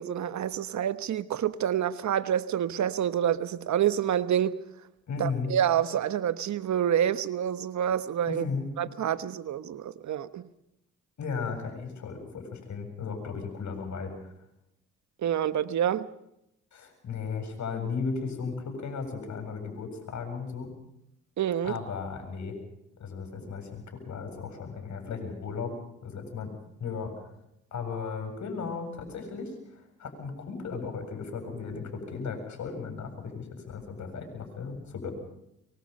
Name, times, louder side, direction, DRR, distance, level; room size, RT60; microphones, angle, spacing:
voice 1, 0.0-4.6 5.2-8.4 8.8-10.5 15.2-16.1 21.4-21.8, right 10 dB, 65° right, 1.2 m, -27 dB
voice 2, 5.1-5.5 8.3-8.7 11.2-14.1 16.7-20.7 21.6-22.5 23.0-25.7 26.0-26.5 26.8-27.2 27.7-35.1, left 5 dB, 60° left, 7.7 m, -35 dB
25.0 x 23.5 x 5.5 m
supercardioid pair, 55°, 32 cm